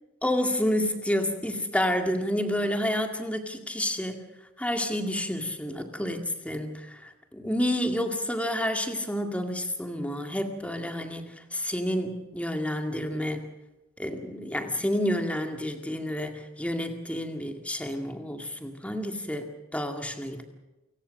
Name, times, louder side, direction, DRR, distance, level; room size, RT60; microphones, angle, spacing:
voice 1, 0.2-4.3 4.6-13.4 14.0-19.5 19.7-20.4, left 1 dB, 5° left, 5 dB, 2.0 m, -29 dB
28.5 x 17.5 x 6.5 m, 1.0 s
head